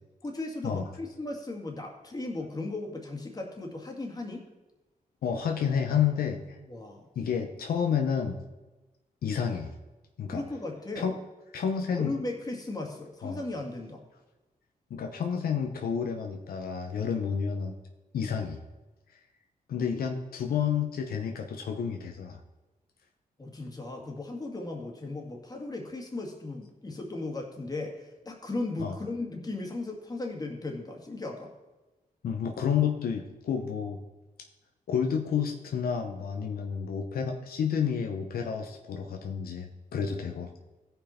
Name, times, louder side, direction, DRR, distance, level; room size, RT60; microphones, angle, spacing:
voice 1, 0.2-4.4 6.7-7.1 10.3-11.1 11.9-14.0 23.4-31.5, left 2 dB, 25° left, 1 dB, 2.1 m, -36 dB
voice 2, 5.2-6.6 7.2-8.4 9.2-9.7 10.2-10.4 11.0-11.1 11.5-12.1 13.2-13.4 14.9-17.8 18.1-18.6 19.7-22.4 28.8-29.0 32.2-34.0 34.9-40.5, left 7 dB, 85° left, 4 dB, 0.9 m, -30 dB
15.5 x 5.5 x 4.3 m, 1.1 s
cardioid pair, 85°, 15 cm